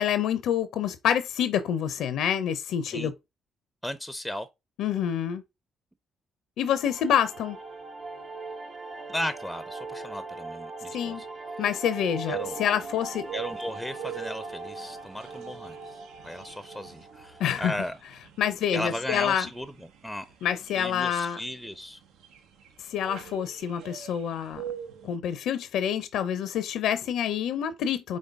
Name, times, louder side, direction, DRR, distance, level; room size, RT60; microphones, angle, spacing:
voice 1, 0.0-3.1 4.8-5.4 6.6-7.6 10.9-11.2 11.6-13.3 17.4-17.7 18.4-19.5 20.4-21.4 22.9-24.6 25.0-28.2, left 9 dB, 70° left, 0.5 m, -27 dB
voice 2, 3.8-4.5 9.1-11.3 12.3-12.6 13.3-18.0 18.7-20.3 20.7-22.0, left 1 dB, 5° right, 0.6 m, -36 dB
sound 1, 6.6-17.7, right 3 dB, 55° right, 1.3 m, -41 dB
sound 2, 12.3-25.1, right 9 dB, 75° right, 0.6 m, -43 dB
5.2 x 3.8 x 2.4 m
hypercardioid pair, 50°, 0 cm